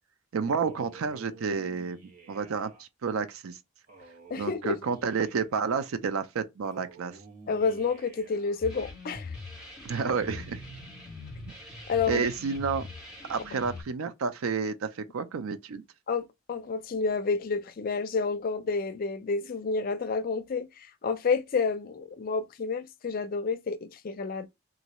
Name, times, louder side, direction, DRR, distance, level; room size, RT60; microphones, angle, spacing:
voice 1, 0.3-3.6 4.4-7.2 9.8-10.6 12.1-12.9 13.3-15.8, right 5 dB, 85° right, 0.5 m, -30 dB
Male speech man speaking, 0.6-2.8 3.9-5.7 6.6-8.6, right 4 dB, 40° right, 1.0 m, -52 dB
voice 2, 4.3-4.8 7.5-9.3 11.9-12.2 16.1-24.5, left 4 dB, 45° left, 0.4 m, -30 dB
sound 1, 8.6-13.8, left 3 dB, 5° right, 1.9 m, -42 dB
3.1 x 2.6 x 2.9 m
head